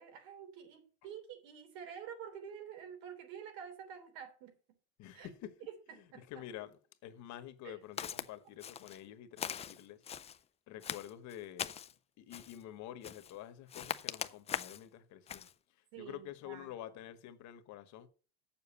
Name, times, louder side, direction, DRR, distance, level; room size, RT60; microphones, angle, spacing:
voice 1, 0.0-4.6 5.1-5.3 5.7-6.2 7.6-7.8 15.9-16.7, right 8 dB, 70° right, 3.4 m, -48 dB
voice 2, 5.0-5.6 6.0-10.0 10.7-11.7 12.2-15.5 16.0-18.1, left 12 dB, 55° left, 1.3 m, -48 dB
Walk footsteps, 8.0-8.3 8.6-9.0 9.4-10.4 10.8-11.9 12.3-12.6 13.0-13.4 13.7-14.8 15.3-15.5, left 8 dB, 20° left, 0.4 m, -41 dB
7.8 x 7.1 x 7.0 m
cardioid pair, 135°, 35 cm